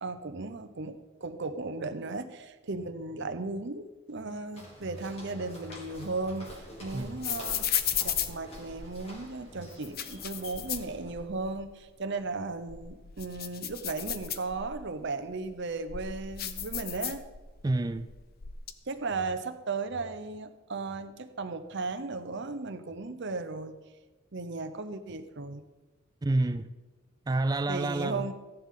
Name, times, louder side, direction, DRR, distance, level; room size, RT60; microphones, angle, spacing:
voice 1, 0.0-7.7 8.0-17.2 18.9-23.8 24.3-25.6 27.7-28.3, right 3 dB, 55° right, 0.8 m, -36 dB
Walk footsteps, 4.5-11.2, equal, 30° left, 2.5 m, -49 dB
sound 1, 5.7-9.1 9.7-11.5 11.9-12.0 12.5-14.9 15.5-17.6 17.9-18.7, left 10 dB, 45° left, 0.6 m, -35 dB
voice 2, 6.9-7.3 17.6-18.1 26.2-26.7 27.3-28.3, right 2 dB, 20° right, 0.3 m, -29 dB
14.5 x 10.5 x 3.7 m
head